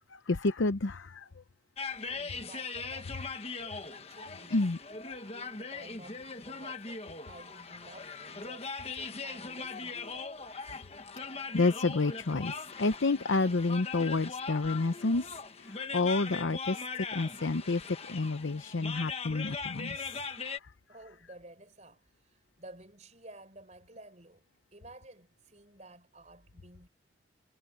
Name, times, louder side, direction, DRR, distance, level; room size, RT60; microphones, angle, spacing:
voice 1, 0.1-1.3 4.5-4.8 11.5-12.5 12.8-15.3 15.6-16.8 17.1-20.6, left 3 dB, 70° left, 0.7 m, -29 dB
sound 1, 1.8-20.6, left 4 dB, 30° left, 1.3 m, -40 dB
voice 2, 1.9-4.7 5.3-10.8 17.2-17.8 20.6-26.9, right 2 dB, 35° right, 4.8 m, -53 dB
head